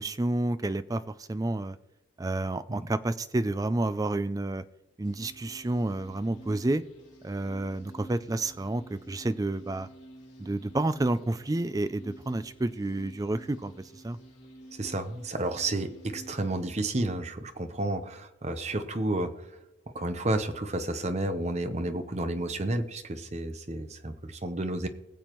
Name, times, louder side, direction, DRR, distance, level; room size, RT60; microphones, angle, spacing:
voice 1, 0.0-1.8 2.2-4.6 5.0-6.8 7.2-9.9 10.4-14.2, right 2 dB, 20° right, 13 dB, 0.4 m, -30 dB
sound 1, 5.0-16.7, right 1 dB, 40° left, 2.3 m, -50 dB
voice 2, 14.8-19.4 19.9-24.9, right 2 dB, 35° right, 8 dB, 0.8 m, -31 dB
21.0 x 7.1 x 3.1 m, 0.95 s
head